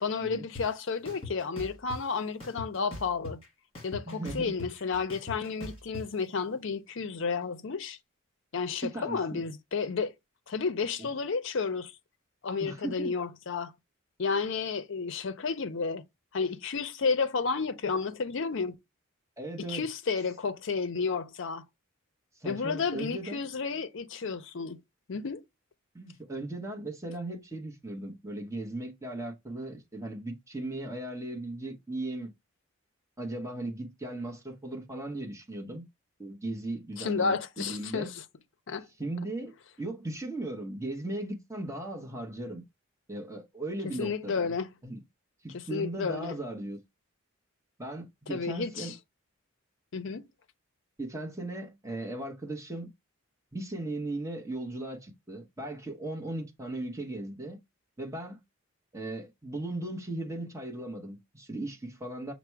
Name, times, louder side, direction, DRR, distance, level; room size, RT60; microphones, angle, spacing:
voice 1, 0.0-3.4 3.8-8.0 8.5-10.1 10.5-11.9 12.4-13.7 14.2-16.0 16.3-18.8 19.7-21.6 22.4-24.8 25.1-25.4 37.0-38.2 38.7-38.9 44.0-44.7 45.5-46.3 48.3-48.9 49.9-50.2, left 5 dB, 60° left, 0.5 m, -31 dB
sound 1, 0.5-0.6 1.0-2.0 2.4-3.5 3.7-6.0, left 2 dB, 25° left, 1.4 m, -41 dB
voice 2, 4.1-4.5 8.8-9.4 11.0-11.1 12.6-13.1 19.4-19.8 22.4-23.4 25.9-32.3 33.2-35.8 36.2-38.1 39.0-42.6 43.1-44.5 44.8-45.0 45.4-46.8 47.8-48.9 51.0-52.9 53.5-57.6 58.0-58.4 58.9-62.3, right 2 dB, 15° right, 0.9 m, -37 dB
5.9 x 2.0 x 4.5 m
head